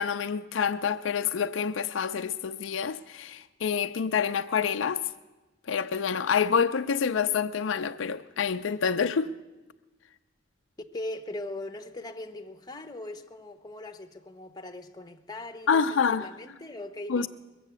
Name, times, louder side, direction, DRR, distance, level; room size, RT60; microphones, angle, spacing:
voice 1, 0.0-5.0 5.7-9.3 15.7-16.3 17.1-17.3, left 6 dB, 75° left, 0.5 m, -27 dB
voice 2, 10.8-17.3, left 2 dB, 20° left, 0.9 m, -40 dB
21.5 x 7.6 x 8.2 m
head